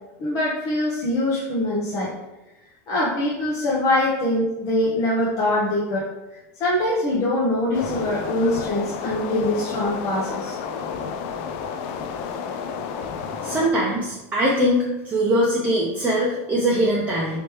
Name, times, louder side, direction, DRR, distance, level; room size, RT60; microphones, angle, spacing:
voice 1, 0.2-2.1 2.9-6.0 6.6-10.5, left 1 dB, 40° left, -6 dB, 0.8 m, -23 dB
sound 1, 7.7-13.7, left 6 dB, 60° left, 0.4 m, -31 dB
voice 2, 13.4-17.4, equal, 20° right, -5 dB, 0.7 m, -22 dB
3.3 x 3.1 x 3.0 m, 1.0 s
supercardioid pair, 125°, 8 cm